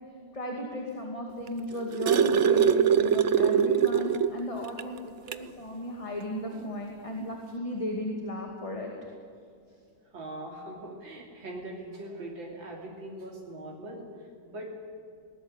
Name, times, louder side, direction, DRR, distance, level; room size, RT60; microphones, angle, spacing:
voice 1, 0.3-8.9, left 1 dB, 15° left, 0 dB, 2.4 m, -35 dB
sound 1, 1.5-4.4 4.8-4.9 5.3-5.5 6.6-6.7, right 8 dB, 55° right, 0.8 m, -23 dB
voice 2, 10.1-14.7, right 1 dB, 90° right, -2 dB, 3.7 m, -41 dB
20.5 x 19.0 x 9.9 m, 2.4 s
omnidirectional pair, 2.0 m